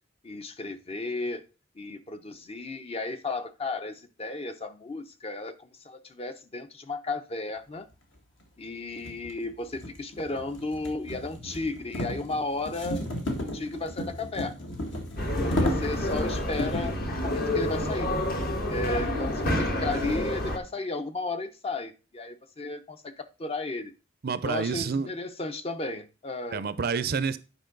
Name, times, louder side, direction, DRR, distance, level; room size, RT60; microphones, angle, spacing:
voice 1, 0.2-1.4 1.8-7.9 8.6-13.1 13.4-14.7 15.3-18.1 18.7-23.9 24.4-26.6, left 2 dB, 30° left, 0.6 m, -34 dB
sound 1, 8.2-8.3 9.0-17.0, left 1 dB, 70° left, 2.0 m, -33 dB
sound 2, 15.2-20.6, left 1 dB, 50° left, 1.3 m, -28 dB
voice 2, 24.2-25.1 26.5-27.4, right 5 dB, 55° right, 0.5 m, -28 dB
8.9 x 5.3 x 3.8 m
head